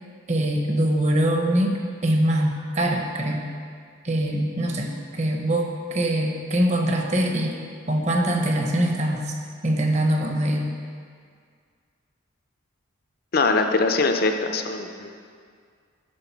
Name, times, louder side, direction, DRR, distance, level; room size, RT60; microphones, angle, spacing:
voice 1, 0.3-3.4 4.0-7.5 7.9-9.3 9.6-10.7, right 1 dB, 35° right, 2 dB, 0.8 m, -23 dB
voice 2, 13.3-15.1, left 3 dB, 50° left, 6 dB, 0.5 m, -22 dB
9.9 x 3.7 x 5.9 m, 2.1 s
head